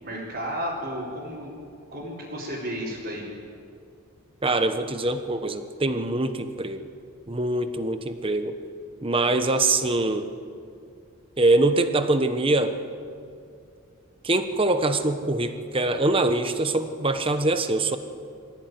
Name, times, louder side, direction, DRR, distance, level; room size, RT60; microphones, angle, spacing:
voice 1, 0.0-1.5 1.9-3.2, equal, 45° right, -7 dB, 4.5 m, -32 dB
voice 2, 4.4-6.9 7.3-8.6 9.0-10.3 11.4-12.8 14.2-18.0, right 2 dB, 25° right, 9 dB, 1.1 m, -23 dB
24.0 x 16.0 x 9.4 m, 2.4 s
head